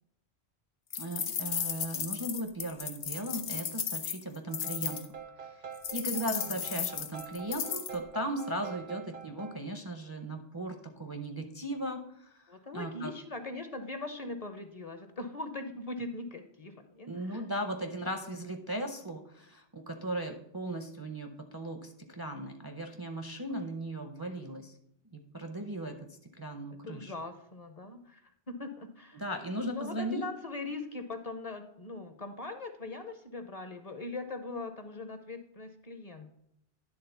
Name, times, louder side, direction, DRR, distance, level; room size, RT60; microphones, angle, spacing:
sound 1, 0.9-5.1 5.8-7.9, left 8 dB, 80° left, 1.0 m, -35 dB
voice 1, 0.9-5.0 5.4-13.1 17.1-24.7 25.1-26.1 26.4-27.1 29.1-30.3, right 1 dB, 30° right, 5 dB, 0.5 m, -37 dB
sound 2, 4.5-9.6, right 7 dB, 75° right, 0.9 m, -46 dB
voice 2, 12.5-17.4 26.8-29.2 29.7-36.3, left 3 dB, 40° left, 7 dB, 0.7 m, -41 dB
10.5 x 3.7 x 5.5 m, 0.75 s
omnidirectional pair, 1.1 m